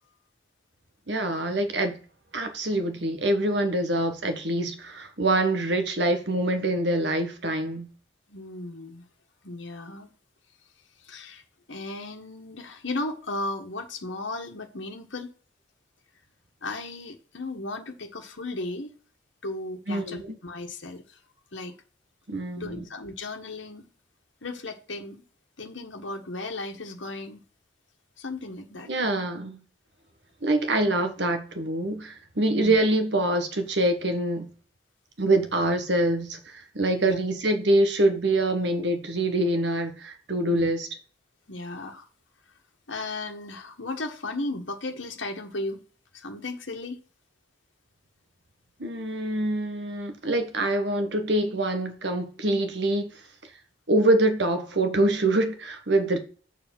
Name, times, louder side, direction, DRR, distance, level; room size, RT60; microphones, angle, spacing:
voice 1, 1.1-2.0 2.3-7.9 19.9-20.4 22.3-22.8 28.9-29.6 30.4-34.5 35.2-40.9 48.8-53.5 53.9-56.2, right 1 dB, 65° right, 1.5 m, -25 dB
voice 2, 8.3-9.0 9.4-10.1 11.0-11.4 11.7-15.3 16.6-18.9 19.4-21.2 21.5-21.7 22.6-23.9 24.4-25.2 25.6-27.5 28.2-28.9 32.6-32.8 37.0-37.2 40.5-40.7 41.5-42.1 42.9-45.8 46.1-47.0, left 2 dB, 75° left, 1.4 m, -35 dB
7.0 x 4.9 x 6.0 m
head